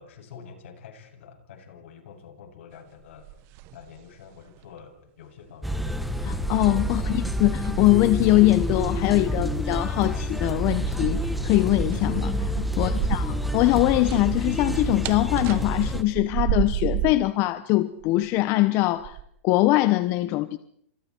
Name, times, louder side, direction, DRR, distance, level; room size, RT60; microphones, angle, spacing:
voice 1, 0.0-3.3 3.7-5.9 6.9-7.2 12.8-13.2, left 6 dB, 70° left, 4 dB, 7.7 m, -46 dB
sound 1, 3.0-4.1 4.4-4.6 5.5-5.6 6.2-7.3 7.6-8.5 10.6-13.6 13.8-17.3 18.0-18.4 19.0-19.2, right 13 dB, 40° right, 1.3 m, -33 dB
sound 2, 5.6-16.0, equal, ahead, 1.5 m, -28 dB
voice 2, 6.2-13.2 13.5-19.2 19.4-20.6, left 18 dB, 35° left, 12 dB, 1.1 m, -22 dB
30.0 x 27.5 x 4.7 m, 0.67 s
supercardioid pair, 150°, 7 cm